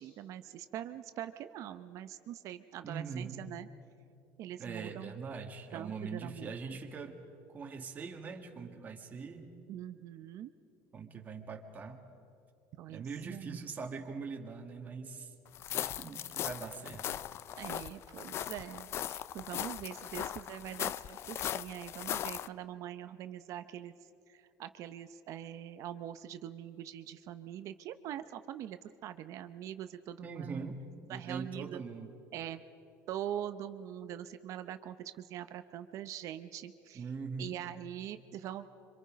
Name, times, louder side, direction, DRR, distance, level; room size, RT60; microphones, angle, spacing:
voice 1, 0.0-3.7 4.4-5.1 5.7-6.5 9.7-10.5 12.8-13.5 17.6-23.9 24.3-30.5 31.1-31.8 32.3-32.6 33.1-37.1 37.4-38.7, right 11 dB, 55° right, 10 dB, 0.7 m, -43 dB
voice 2, 2.8-3.4 4.6-7.2 7.5-9.5 10.9-12.0 12.9-15.3 15.7-17.1 30.2-30.8 31.1-32.1 36.9-37.6, right 5 dB, 25° right, 2 dB, 2.0 m, -42 dB
sound 1, 15.5-22.5, left 10 dB, 40° left, 0.4 m, -39 dB
26.5 x 25.5 x 5.2 m, 2.7 s
cardioid pair, 145°, 7 cm